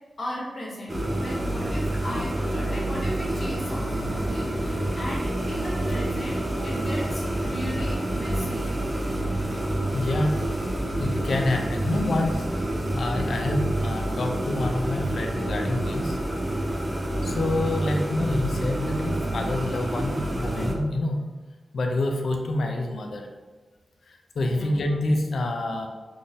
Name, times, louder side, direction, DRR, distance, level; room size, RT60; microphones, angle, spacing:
voice 1, 0.2-8.7 24.4-25.0, equal, 45° left, -4 dB, 0.9 m, -36 dB
sound 1, 0.9-20.7, right 1 dB, 20° right, 0.4 m, -28 dB
voice 2, 9.9-10.3 11.0-12.5 12.9-16.2 17.2-21.2 21.7-23.3 24.1-25.9, left 2 dB, 75° left, 3 dB, 0.4 m, -27 dB
3.7 x 2.6 x 2.6 m, 1.3 s
wide cardioid pair, 150°, 0 cm